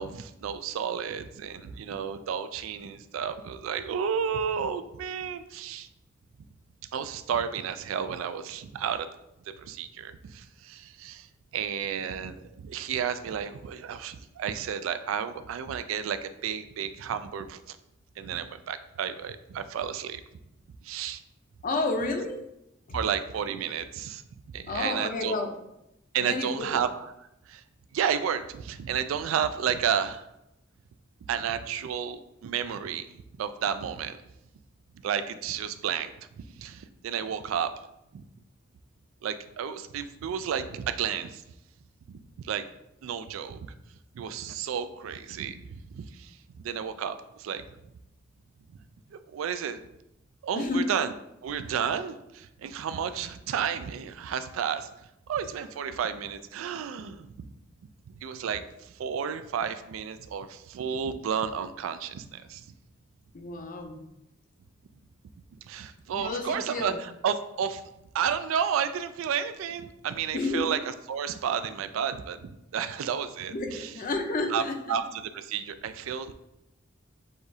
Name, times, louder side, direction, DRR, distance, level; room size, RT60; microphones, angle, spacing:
voice 1, 0.0-5.9 6.9-9.1 9.6-11.3 11.5-17.8 18.2-20.2 20.8-21.2 22.9-24.2 24.5-25.3 26.1-27.1 27.5-27.6 27.9-30.3 31.3-33.1 33.4-34.2 35.0-37.9 38.1-38.2 39.2-41.4 42.1-42.7 43.0-43.7 44.1-47.6 49.1-49.8 50.4-51.1 51.4-54.9 55.3-57.5 58.2-58.6 59.0-62.7 65.6-66.9 67.2-67.8 68.1-70.8 71.1-73.9 74.5-74.6 74.9-76.3, right 8 dB, 90° right, 11 dB, 0.3 m, -32 dB
voice 2, 21.6-22.4 24.7-25.5 26.2-26.8 50.5-50.9 63.3-64.1 66.1-67.0 70.3-70.7 73.5-75.0, left 2 dB, 45° left, 4 dB, 0.5 m, -30 dB
6.3 x 2.4 x 2.7 m, 0.86 s
head